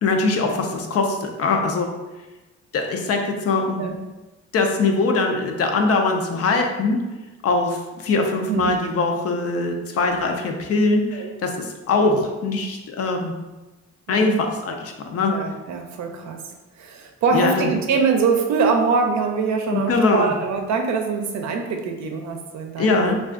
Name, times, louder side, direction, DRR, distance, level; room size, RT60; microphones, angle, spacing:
voice 1, 0.0-1.9 2.7-3.9 4.5-7.0 7.4-13.3 14.1-15.3 17.3-17.7 19.7-20.3 22.8-23.2, left 3 dB, 50° left, 3 dB, 0.5 m, -22 dB
voice 2, 15.3-16.4 16.8-23.2, right 5 dB, 65° right, 3 dB, 0.6 m, -23 dB
2.4 x 2.4 x 3.6 m, 1.1 s
cardioid pair, 90°, 30 cm